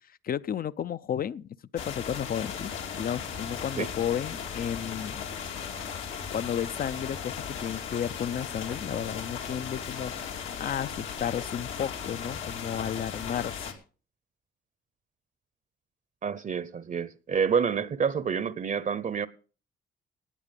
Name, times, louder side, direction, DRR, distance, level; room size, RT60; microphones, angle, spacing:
voice 1, 0.2-1.5 1.7-2.7 3.0-5.2 6.3-13.8, left 9 dB, 45° left, 0.6 m, -33 dB
sound 1, 1.8-13.7, left 7 dB, 85° left, 2.6 m, -37 dB
voice 2, 16.2-19.3, right 6 dB, 40° right, 0.8 m, -28 dB
18.5 x 8.2 x 5.3 m
cardioid pair, 90°, 20 cm